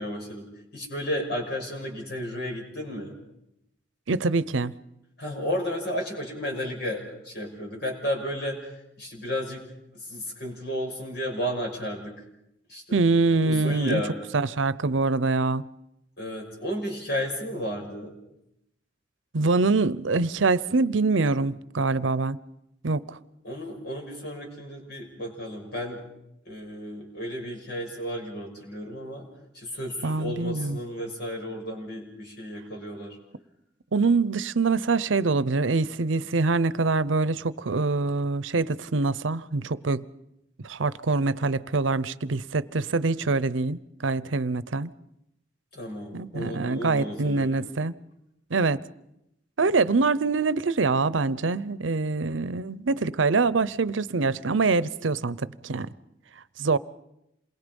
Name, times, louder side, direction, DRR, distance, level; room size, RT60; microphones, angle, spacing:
voice 1, 0.0-3.2 5.2-8.7 9.0-9.6 10.0-12.2 12.7-13.0 13.4-14.2 16.2-18.1 23.4-26.0 26.5-29.2 29.5-33.2 45.7-47.7, equal, 55° left, 6.2 m, -33 dB
voice 2, 4.1-4.7 12.9-14.0 14.3-15.6 19.3-22.4 22.8-23.2 30.0-30.8 33.9-40.1 40.6-44.9 46.1-47.9 48.5-48.8 49.6-55.9 56.6-56.8, right 3 dB, 85° right, 0.7 m, -24 dB
28.0 x 22.0 x 5.4 m
head